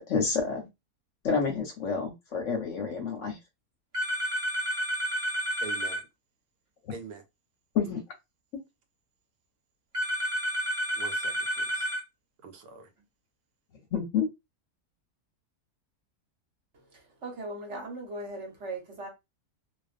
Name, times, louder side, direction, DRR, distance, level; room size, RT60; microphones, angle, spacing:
voice 1, 0.1-0.7 1.2-3.4 7.7-8.0 13.9-14.3, left 5 dB, 65° left, 0.8 m, -28 dB
sound 1, 3.9-6.0 9.9-12.0, equal, 30° right, 0.6 m, -30 dB
voice 2, 5.6-6.0 6.9-7.2 10.9-11.9 12.4-12.9, right 4 dB, 85° right, 1.1 m, -44 dB
voice 3, 17.2-19.1, right 2 dB, 55° right, 1.0 m, -38 dB
2.5 x 2.3 x 2.4 m
omnidirectional pair, 1.6 m